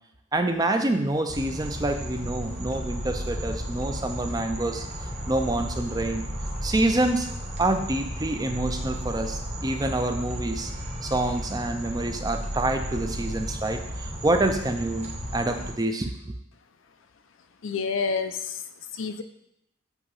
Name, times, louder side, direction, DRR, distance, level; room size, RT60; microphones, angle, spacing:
voice 1, 0.3-4.9 5.3-6.3 6.6-7.3 7.6-10.7 11.0-16.3, right 2 dB, 20° right, 6 dB, 0.5 m, -27 dB
sound 1, 1.3-15.7, equal, 35° right, 1.3 m, -34 dB
voice 2, 17.6-19.2, left 5 dB, 85° left, 8 dB, 0.6 m, -29 dB
8.1 x 2.9 x 5.4 m, 0.78 s
head